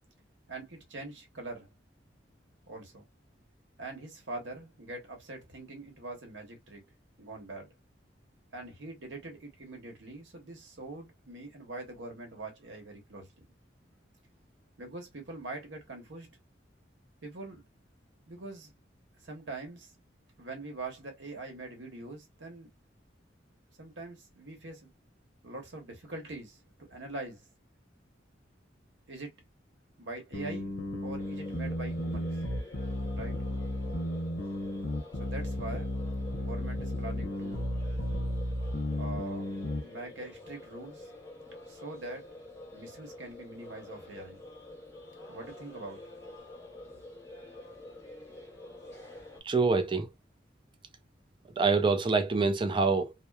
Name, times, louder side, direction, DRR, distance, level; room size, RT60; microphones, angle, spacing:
voice 1, 0.5-1.7 2.7-3.1 3.8-6.8 7.2-7.7 8.5-13.3 14.8-16.3 17.2-17.6 18.3-18.7 19.2-19.9 20.4-22.7 23.8-24.9 25.4-27.4 29.1-29.3 30.0-30.7 31.0-32.3 33.1-33.3 35.2-35.9 36.4-37.7 39.0-39.5 39.8-41.1 41.7-42.3 42.7-44.4 45.3-46.0, right 2 dB, 75° right, 1.1 m, -43 dB
sound 1, 30.3-39.8, left 1 dB, 70° left, 0.8 m, -34 dB
sound 2, 31.2-49.4, left 1 dB, 15° left, 1.2 m, -48 dB
voice 2, 49.4-50.1 51.6-53.1, right 4 dB, 25° right, 0.4 m, -25 dB
2.9 x 2.1 x 2.2 m
head